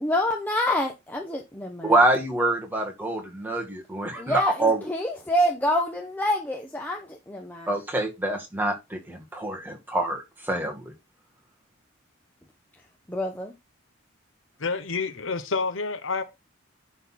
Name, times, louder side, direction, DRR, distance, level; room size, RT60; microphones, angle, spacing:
voice 1, 0.0-1.9 4.2-7.7 13.1-13.5, left 1 dB, 10° left, 1.0 m, -27 dB
voice 2, 1.8-4.9 7.7-10.8, right 2 dB, 10° right, 2.0 m, -25 dB
voice 3, 14.6-16.2, left 4 dB, 70° left, 1.0 m, -28 dB
11.0 x 4.0 x 4.2 m
head